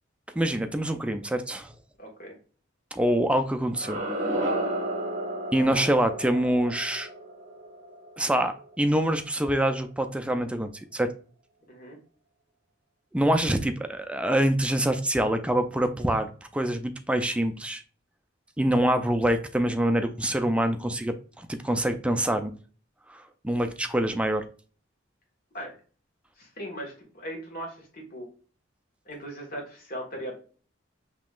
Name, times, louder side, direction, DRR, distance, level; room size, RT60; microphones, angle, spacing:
voice 1, 0.4-1.7 2.9-4.0 5.5-7.1 8.2-11.1 13.1-17.8 18.6-22.5 23.1-24.4, right 1 dB, 5° right, 7 dB, 0.3 m, -25 dB
voice 2, 2.0-2.3 11.7-12.0 25.5-25.7 26.4-28.3 29.0-30.4, equal, 50° left, 0 dB, 1.5 m, -38 dB
sound 1, 3.7-8.6, right 1 dB, 45° right, 1.1 m, -32 dB
5.5 x 2.9 x 2.4 m, 0.40 s
head